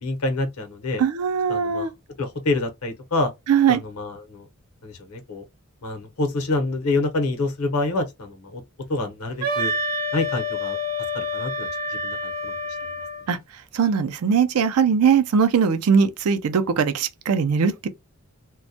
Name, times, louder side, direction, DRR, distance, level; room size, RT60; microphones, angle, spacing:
voice 1, 0.0-1.0 1.5-1.9 2.2-3.3 3.7-4.5 4.8-5.4 5.8-8.6 8.9-9.7 10.1-10.8 11.1-11.7 12.0-12.5, left 2 dB, 80° left, 0.8 m, -27 dB
voice 2, 1.0-1.9 3.5-3.8 13.3-13.4 13.7-17.9, right 6 dB, 85° right, 0.4 m, -20 dB
Wind instrument woodwind instrument, 9.4-13.2, left 1 dB, 40° right, 0.7 m, -28 dB
2.2 x 2.1 x 2.6 m
head